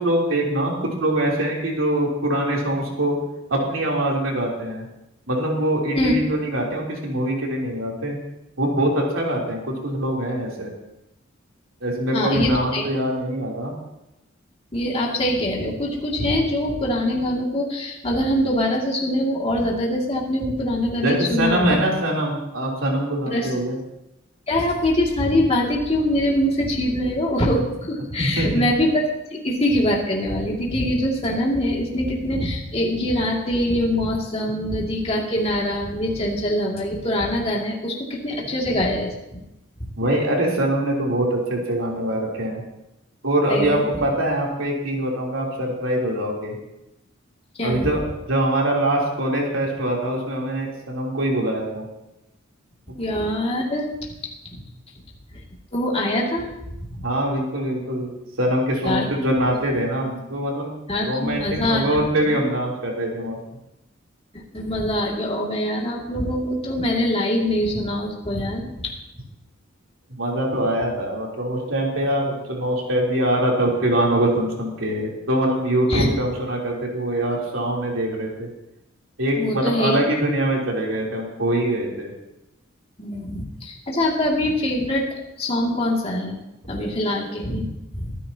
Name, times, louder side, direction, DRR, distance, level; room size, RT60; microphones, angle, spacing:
voice 1, 0.0-3.2 3.5-4.9 5.3-8.2 8.6-10.7 11.8-13.7 21.0-23.8 28.2-28.5 34.6-34.7 38.7-38.8 40.0-42.6 43.2-46.6 47.6-51.9 57.0-60.7 61.1-63.4 70.1-78.5 79.2-82.1, right 1 dB, 90° right, -2 dB, 3.4 m, -23 dB
voice 2, 12.1-12.8 14.7-21.8 23.3-23.5 24.5-29.0 29.3-39.4 43.5-43.8 47.6-47.9 53.0-53.9 54.5-54.6 55.7-56.5 56.9-57.0 58.8-59.0 60.9-62.0 64.3-68.7 75.9-76.1 79.4-80.0 83.0-85.1 85.4-86.4 86.7-88.2, left 1 dB, 30° left, -3 dB, 2.4 m, -23 dB
23.0 x 10.0 x 2.9 m, 0.90 s
head